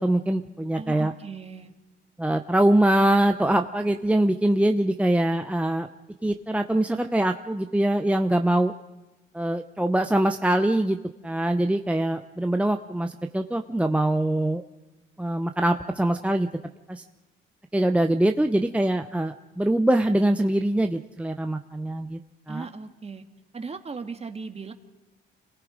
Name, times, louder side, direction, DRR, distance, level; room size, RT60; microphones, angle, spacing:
voice 1, 0.0-1.1 2.2-5.9 6.2-8.7 9.3-11.0 11.2-14.6 15.2-16.5 16.9-17.0 17.7-22.2 22.5-22.7, right 1 dB, 5° right, 6 dB, 0.8 m, -23 dB
voice 2, 0.8-1.7 22.5-23.3 23.5-24.7, right 4 dB, 30° right, 6 dB, 1.9 m, -37 dB
27.5 x 20.5 x 5.1 m, 1.1 s
cardioid pair, 90°, 20 cm